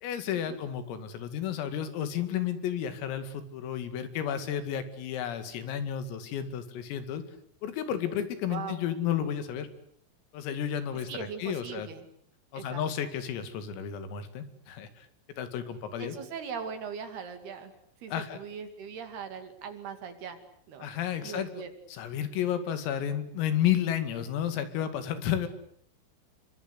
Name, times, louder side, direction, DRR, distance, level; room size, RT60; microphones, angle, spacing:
voice 1, 0.0-7.2 7.6-9.7 10.3-11.9 12.5-15.1 15.4-16.2 18.1-18.4 20.8-21.6 21.9-25.5, left 9 dB, 90° left, 10 dB, 5.1 m, -32 dB
voice 2, 8.5-8.8 11.1-12.1 12.5-12.8 16.0-17.7 18.0-20.4 20.7-20.9 21.2-21.7, right 6 dB, 55° right, 8 dB, 4.0 m, -40 dB
28.5 x 24.0 x 8.3 m, 0.64 s
omnidirectional pair, 5.9 m